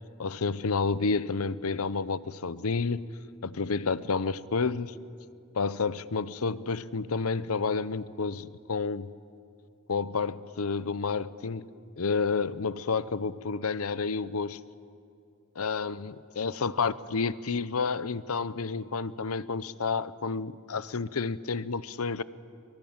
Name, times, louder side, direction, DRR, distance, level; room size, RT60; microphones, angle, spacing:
voice 1, 0.2-3.1 3.4-4.9 5.5-9.1 9.9-11.7 12.0-14.6 15.6-22.2, left 4 dB, 75° left, 0.8 m, -30 dB
24.0 x 23.5 x 8.8 m
head